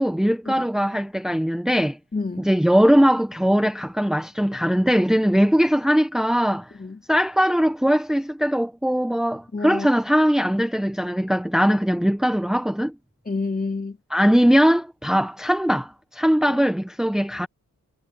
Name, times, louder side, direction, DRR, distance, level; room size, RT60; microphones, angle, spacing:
voice 1, 0.0-2.0 2.4-6.7 7.1-12.9 14.1-17.5, equal, ahead, 1.2 m, -20 dB
voice 2, 2.1-2.5 6.7-7.0 9.5-9.9 13.2-14.0 16.5-16.6, left 3 dB, 25° left, 2.8 m, -29 dB
cardioid pair, 75°, 32 cm